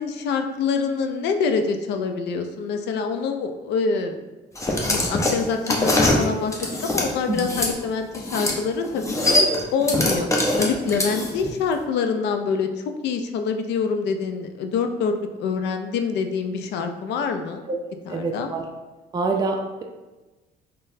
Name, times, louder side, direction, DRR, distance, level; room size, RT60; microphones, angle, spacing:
voice 1, 0.0-4.2 4.9-6.5 6.8-9.2 9.7-10.3 10.6-15.1 15.4-17.7 18.1-18.5, left 5 dB, 70° left, 6 dB, 0.4 m, -25 dB
sound 1, 4.5-7.7 8.1-8.6 8.8-11.5, left 1 dB, 15° left, 0.6 m, -23 dB
voice 2, 18.1-18.6 19.1-19.8, right 3 dB, 25° right, 2 dB, 0.4 m, -25 dB
3.8 x 2.0 x 2.6 m, 1.2 s
supercardioid pair, 85°, 18 cm